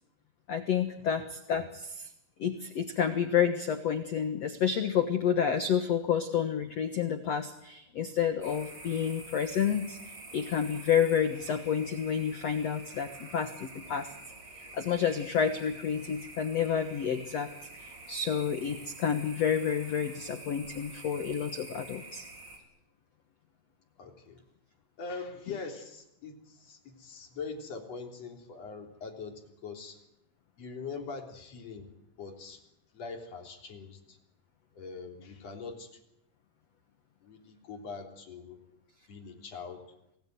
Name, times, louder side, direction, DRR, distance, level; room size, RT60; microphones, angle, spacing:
voice 1, 0.5-2.1 2.4-10.0 10.3-14.1 14.7-17.5 17.8-22.2, left 8 dB, 70° left, 8 dB, 1.5 m, -29 dB
sound 1, 8.4-22.6, right 2 dB, 25° right, 3.8 m, -48 dB
voice 2, 24.0-24.4 25.0-30.0 30.6-31.9 32.2-32.6 32.9-34.2 34.7-35.9 37.2-38.6 39.1-39.8, left 4 dB, 40° left, 2 dB, 4.2 m, -42 dB
27.0 x 18.5 x 9.4 m, 0.82 s
omnidirectional pair, 5.0 m